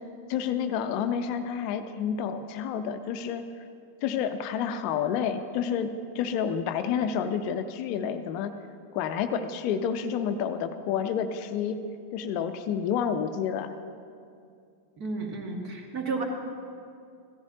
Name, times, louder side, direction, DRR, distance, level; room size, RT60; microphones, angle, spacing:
voice 1, 0.3-3.4 4.0-8.5 8.9-11.8 12.1-13.7, left 7 dB, 45° left, 9 dB, 0.6 m, -29 dB
voice 2, 15.0-16.2, right 4 dB, 40° right, 2 dB, 1.7 m, -32 dB
16.0 x 13.5 x 2.8 m, 2.4 s
figure-of-eight pair, 90°, 0 cm